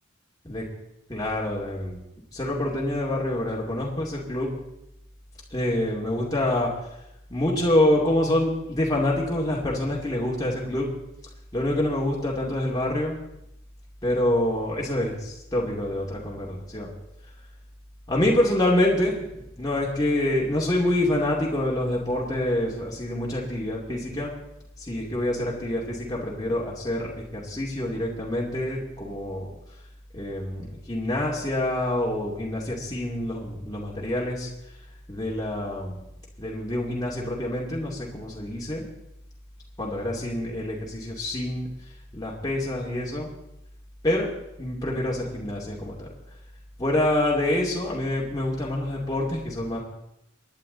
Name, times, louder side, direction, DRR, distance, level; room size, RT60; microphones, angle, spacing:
voice 1, 1.1-2.0 2.3-4.5 5.5-6.7 7.3-10.9 11.5-13.1 14.0-16.9 18.1-24.3 24.8-29.5 30.1-34.5 35.1-35.9 36.4-38.8 39.8-41.7 42.1-43.3 44.0-44.3 44.6-46.1 46.8-49.8, left 1 dB, 20° left, -4 dB, 2.6 m, -26 dB
24.0 x 10.5 x 4.0 m, 0.86 s
head